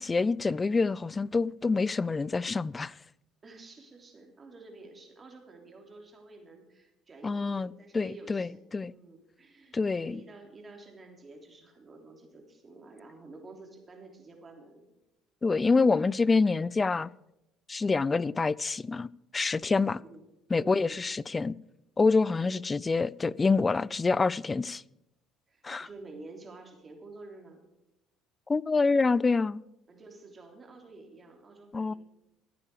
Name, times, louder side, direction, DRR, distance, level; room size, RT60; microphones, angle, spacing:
voice 1, 0.0-3.0 7.2-8.9 9.7-10.2 15.4-17.1 17.7-19.1 19.3-20.0 20.5-21.6 22.0-24.8 25.6-25.9 28.5-29.6 31.7-31.9, left 4 dB, 25° left, 0.3 m, -26 dB
voice 2, 3.4-8.6 8.9-14.9 18.2-18.4 19.7-20.2 20.5-21.0 22.2-22.4 25.5-27.6 29.9-32.0, right 3 dB, 30° right, 3.2 m, -50 dB
14.5 x 9.8 x 4.9 m
supercardioid pair, 75°, 0 cm